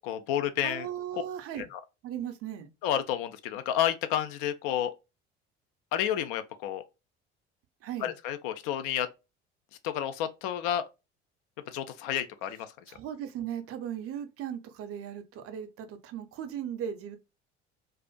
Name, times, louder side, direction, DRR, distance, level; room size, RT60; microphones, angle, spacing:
voice 1, 0.0-0.9 1.7-1.8 2.8-4.9 5.9-6.8 8.0-9.1 9.8-10.8 11.7-12.7, left 10 dB, 60° left, 0.5 m, -30 dB
voice 2, 0.6-1.7 2.0-2.7 7.8-8.1 12.9-17.2, right 9 dB, 45° right, 0.6 m, -37 dB
2.4 x 2.3 x 2.2 m
figure-of-eight pair, 60°, 32 cm